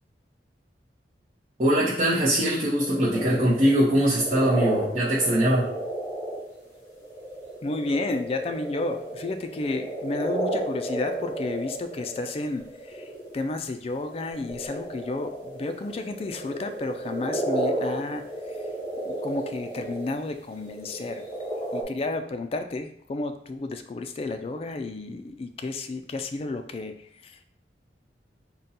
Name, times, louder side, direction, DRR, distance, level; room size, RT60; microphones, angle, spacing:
voice 1, 1.6-5.7, equal, 40° right, -9 dB, 0.7 m, -22 dB
sound 1, 2.8-13.5 13.9-20.1 20.6-21.8, right 1 dB, 15° left, 1.0 m, -32 dB
voice 2, 7.6-18.7 19.0-21.3 21.7-27.4, left 2 dB, 35° left, 7 dB, 0.3 m, -32 dB
3.8 x 2.2 x 4.0 m, 0.65 s
head